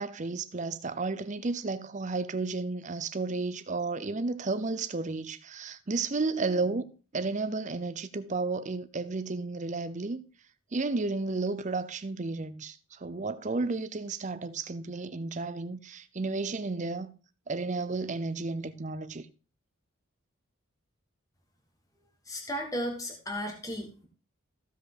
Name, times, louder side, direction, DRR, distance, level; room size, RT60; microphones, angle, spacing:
voice 1, 0.0-6.8 7.1-10.2 10.7-17.1 17.5-19.3, right 3 dB, 35° right, 0.6 m, -32 dB
voice 2, 22.3-24.1, equal, 15° left, 1.6 m, -35 dB
15.0 x 5.3 x 3.8 m
head